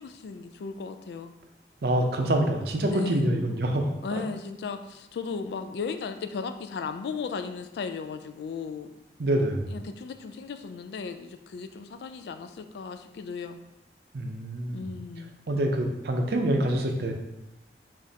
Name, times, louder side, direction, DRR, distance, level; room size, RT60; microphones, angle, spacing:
voice 1, 0.0-1.3 2.9-3.3 4.0-8.9 9.7-13.6 14.7-15.4, left 5 dB, 75° left, 8 dB, 0.3 m, -36 dB
voice 2, 1.8-4.2 9.2-9.8 14.1-15.0 15.5-17.1, right 1 dB, 65° right, 3 dB, 0.5 m, -26 dB
5.0 x 2.5 x 2.7 m, 0.91 s
head